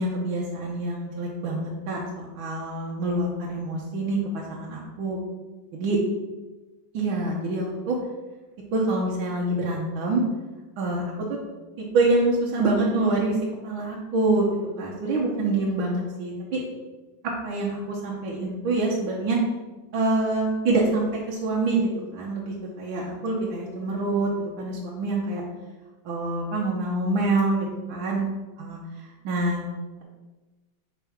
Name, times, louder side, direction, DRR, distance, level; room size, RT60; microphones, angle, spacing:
voice 1, 0.0-5.2 5.7-6.0 6.9-8.0 8.7-10.2 10.8-11.0 11.9-13.3 13.6-14.5 14.8-16.6 17.4-19.4 19.9-21.9 22.1-24.3 24.6-25.4 26.0-28.8 29.2-29.6, right 2 dB, 75° right, -4 dB, 1.7 m, -26 dB
5.0 x 3.6 x 5.7 m, 1.2 s
omnidirectional pair, 2.2 m